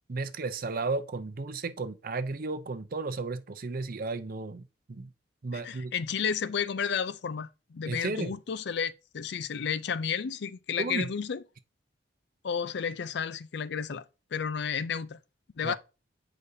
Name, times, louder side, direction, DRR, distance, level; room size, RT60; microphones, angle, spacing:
voice 1, 0.1-4.6 4.9-5.1 5.4-5.9 7.9-8.3 10.8-11.1 15.6-15.8, right 3 dB, 50° right, 0.6 m, -33 dB
voice 2, 5.5-11.4 12.4-14.0 14.3-15.2 15.6-15.7, left 7 dB, 65° left, 0.4 m, -32 dB
8.1 x 5.1 x 2.7 m
head